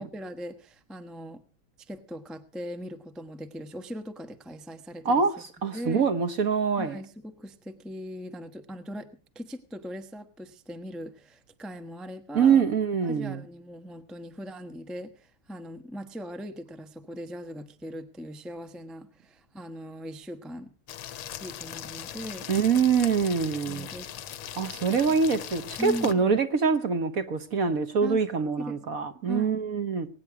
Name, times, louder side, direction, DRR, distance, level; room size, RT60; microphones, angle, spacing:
voice 1, 0.0-1.4 1.9-5.2 5.7-6.1 6.8-9.1 9.3-12.6 13.0-20.7 21.4-22.5 23.7-24.1 25.0-25.2 25.8-26.3 28.0-28.2 28.6-28.8 29.3-29.6, equal, ahead, 0.4 m, -39 dB
voice 2, 5.0-7.0 12.3-13.4 22.5-23.9 24.6-30.1, right 6 dB, 50° right, 1.2 m, -25 dB
sound 1, 20.9-26.1, left 11 dB, 75° left, 1.7 m, -39 dB
22.5 x 9.6 x 4.8 m
omnidirectional pair, 2.4 m